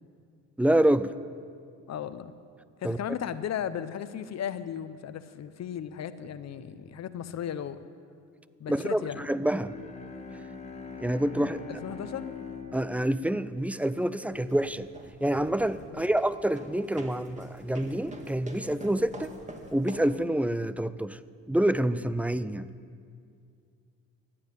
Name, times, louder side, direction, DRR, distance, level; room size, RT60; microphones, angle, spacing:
voice 1, 0.6-1.1 2.8-3.0 8.7-9.8 11.0-11.6 12.7-14.9 15.2-19.4 19.7-21.2 21.5-22.7, right 1 dB, 5° right, 0.4 m, -27 dB
voice 2, 1.9-2.3 2.8-7.8 8.6-9.2 11.3-12.3 15.9-16.1, left 9 dB, 60° left, 0.9 m, -36 dB
Bowed string instrument, 9.4-14.7, left 4 dB, 20° left, 1.9 m, -43 dB
sound 1, 14.3-20.2, right 1 dB, 25° right, 2.0 m, -45 dB
14.5 x 9.6 x 9.2 m
cardioid pair, 90°, 30 cm